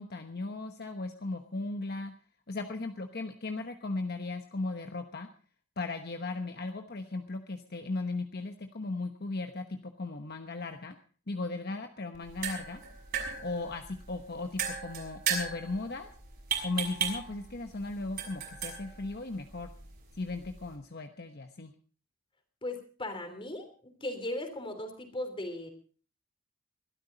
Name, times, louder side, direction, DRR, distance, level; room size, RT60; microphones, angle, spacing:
voice 1, 0.0-2.1 2.5-5.3 5.8-11.0 11.3-12.8 13.4-16.1 16.6-19.7 20.2-21.7, left 3 dB, 55° left, 6 dB, 1.1 m, -37 dB
sound 1, 12.1-20.8, right 7 dB, 50° right, 6.2 m, -37 dB
voice 2, 22.6-25.7, left 1 dB, 25° left, 7 dB, 3.3 m, -37 dB
22.5 x 13.0 x 4.0 m, 0.40 s
head